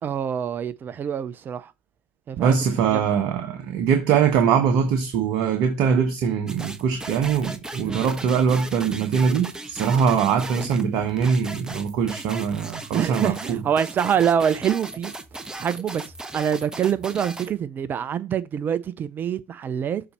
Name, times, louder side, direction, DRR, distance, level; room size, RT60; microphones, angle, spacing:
voice 1, 0.0-1.7 2.3-2.6 2.9-3.1 7.8-8.0 12.9-15.1 15.5-16.0 16.3-20.0, right 8 dB, 40° right, 0.6 m, -25 dB
voice 2, 2.4-13.6, right 7 dB, 65° right, 1.2 m, -22 dB
sound 1, 6.5-17.5, right 2 dB, 15° right, 1.1 m, -37 dB
6.9 x 4.1 x 4.4 m
hypercardioid pair, 65°, 5 cm